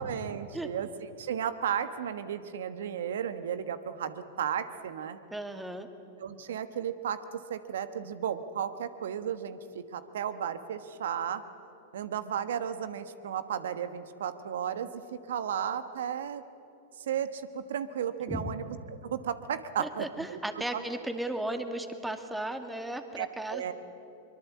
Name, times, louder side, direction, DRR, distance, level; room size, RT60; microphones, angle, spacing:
voice 1, 0.0-5.2 6.2-11.4 11.9-16.4 17.1-20.4 20.7-20.8 23.2-23.7, right 8 dB, 75° right, 11 dB, 1.3 m, -34 dB
voice 2, 5.3-5.9 18.3-18.5 19.8-23.7, right 1 dB, 5° right, 7 dB, 2.1 m, -35 dB
23.5 x 22.5 x 8.5 m, 2.9 s
hypercardioid pair, 105°, 0 cm